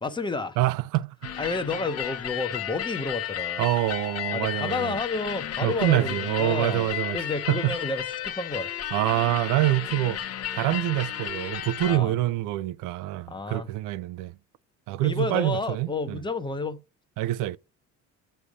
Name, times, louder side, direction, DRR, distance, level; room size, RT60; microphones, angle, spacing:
voice 1, 0.0-0.6 1.4-3.7 4.3-8.7 11.9-12.1 13.3-13.7 15.0-16.8, left 3 dB, 15° left, 0.8 m, -31 dB
voice 2, 0.6-1.3 3.6-4.9 5.6-7.2 7.5-7.7 8.9-10.2 10.5-14.3 14.9-16.2 17.2-17.6, right 16 dB, 85° right, 0.5 m, -26 dB
sound 1, 1.2-12.0, left 11 dB, 55° left, 0.8 m, -33 dB
8.4 x 3.3 x 5.1 m
cardioid pair, 130°, 30 cm